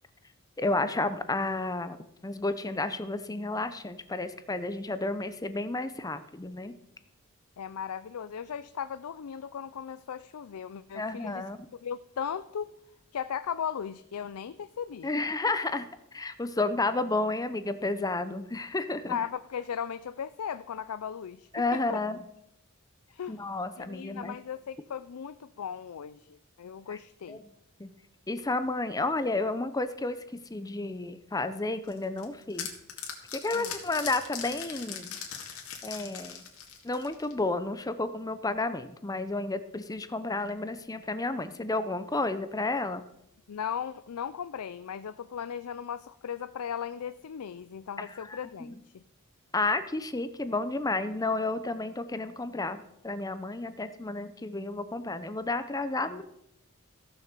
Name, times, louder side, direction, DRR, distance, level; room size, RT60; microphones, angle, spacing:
voice 1, 0.6-6.7 10.9-11.7 15.0-15.9 16.1-19.2 21.5-22.2 23.3-24.4 26.9-27.0 27.3-27.4 27.8-27.9 28.3-32.7 33.3-35.2 35.8-36.4 36.8-43.0 48.0-48.4 48.7-48.8 49.5-56.2, left 2 dB, 15° left, 11 dB, 0.6 m, -31 dB
voice 2, 7.6-11.5 11.8-12.7 13.1-15.1 19.1-22.0 23.1-27.4 33.5-33.8 43.5-49.0, left 8 dB, 90° left, 13 dB, 0.4 m, -37 dB
sound 1, 31.9-37.4, left 7 dB, 70° left, 2.2 m, -40 dB
15.0 x 7.0 x 6.7 m, 0.80 s
head